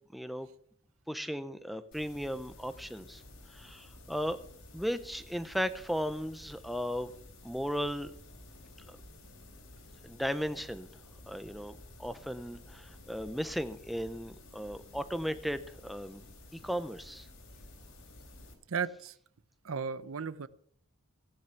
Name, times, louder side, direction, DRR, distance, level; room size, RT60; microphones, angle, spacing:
voice 1, 0.1-0.5 1.1-3.2 3.5-4.4 4.7-7.1 7.4-8.1 8.9-9.0 10.0-10.9 11.3-16.2 16.5-17.3, equal, ahead, 11 dB, 0.6 m, -36 dB
sound 1, 1.9-18.5, left 2 dB, 75° left, 3.4 m, -53 dB
voice 2, 18.7-19.1 19.6-20.5, right 6 dB, 75° right, 17 dB, 0.6 m, -35 dB
15.5 x 9.4 x 5.8 m, 0.62 s
head